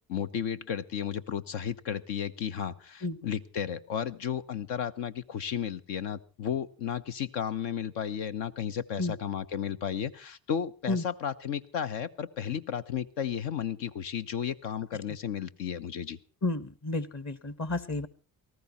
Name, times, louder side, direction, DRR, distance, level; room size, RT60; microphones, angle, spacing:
voice 1, 0.1-16.2, left 8 dB, 75° left, 10 dB, 1.0 m, -33 dB
voice 2, 16.4-18.1, left 2 dB, 35° left, 14 dB, 1.6 m, -31 dB
18.5 x 14.0 x 4.2 m, 0.36 s
hypercardioid pair, 50°, 44 cm